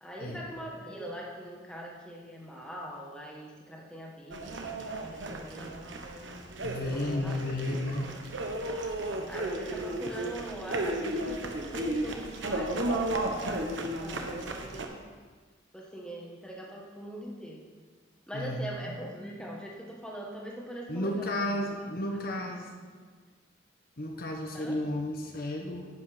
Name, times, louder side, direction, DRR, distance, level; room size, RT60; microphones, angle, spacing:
voice 1, 0.0-5.7 6.9-8.7 9.3-13.7 14.0-15.0 15.7-17.6 18.3-23.0 24.5-24.8, right 1 dB, 5° left, -3 dB, 1.5 m, -42 dB
sound 1, 4.3-14.9, right 1 dB, 70° right, 1.2 m, -34 dB
voice 2, 6.6-8.1 18.3-18.7 20.9-22.7 24.0-25.9, left 1 dB, 50° left, 1 dB, 1.2 m, -33 dB
10.5 x 8.3 x 5.0 m, 1.4 s
head